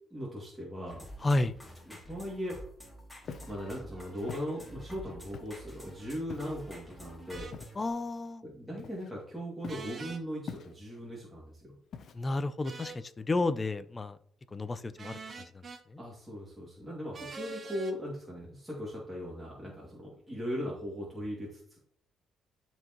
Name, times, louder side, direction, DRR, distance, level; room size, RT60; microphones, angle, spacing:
voice 1, 0.1-1.0 1.9-2.6 3.4-7.5 8.4-11.8 16.0-21.8, equal, 10° right, -5 dB, 2.4 m, -39 dB
sound 1, 0.9-7.9, equal, 5° left, 2.5 m, -49 dB
voice 2, 1.2-1.6 7.8-8.4 12.1-14.2 14.5-15.2 15.5-15.6 15.9-16.0, left 2 dB, 25° left, 13 dB, 0.6 m, -31 dB
Walk footsteps, 3.2-3.6 4.3-4.5 5.3-5.7 6.3-6.6 7.5-7.8 8.8-9.2 9.6-9.9 10.5-11.0 11.9-12.4, left 6 dB, 55° left, 0.8 m, -44 dB
sound 2, 7.3-7.6 9.7-10.2 12.6-13.0 15.0-15.8 17.1-18.0, right 4 dB, 40° right, 0.9 m, -44 dB
12.5 x 4.6 x 3.1 m, 0.62 s
cardioid pair, 110°, 0 cm